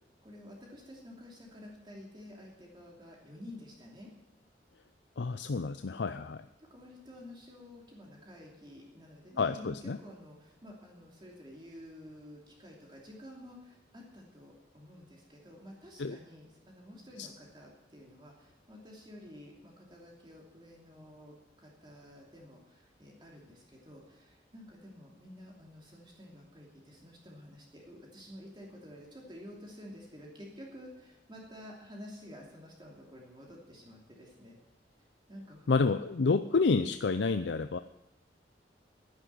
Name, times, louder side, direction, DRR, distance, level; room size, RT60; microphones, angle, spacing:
voice 1, 0.2-4.1 6.6-34.5 35.3-36.0, left 1 dB, 25° right, -2 dB, 2.8 m, -51 dB
voice 2, 5.2-6.4 9.4-10.0 16.0-16.2 17.2-17.3 35.7-37.8, left 4 dB, 80° left, 10 dB, 0.5 m, -29 dB
11.0 x 10.5 x 9.4 m, 0.92 s
head